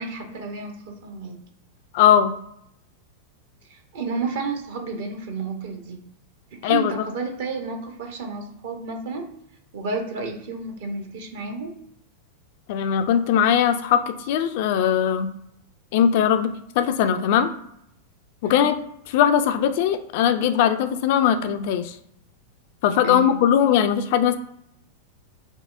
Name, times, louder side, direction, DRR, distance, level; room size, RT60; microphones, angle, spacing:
voice 1, 0.0-1.4 3.7-6.0 6.5-9.3 9.7-11.8 18.4-18.7 23.0-23.4, right 4 dB, 55° right, 4 dB, 0.7 m, -31 dB
voice 2, 1.9-2.3 6.6-6.9 12.7-15.3 15.9-17.5 18.4-18.8 19.1-21.9 22.8-24.4, left 9 dB, 50° left, 9 dB, 0.3 m, -20 dB
5.4 x 2.0 x 2.4 m, 0.74 s
figure-of-eight pair, 90°, 0 cm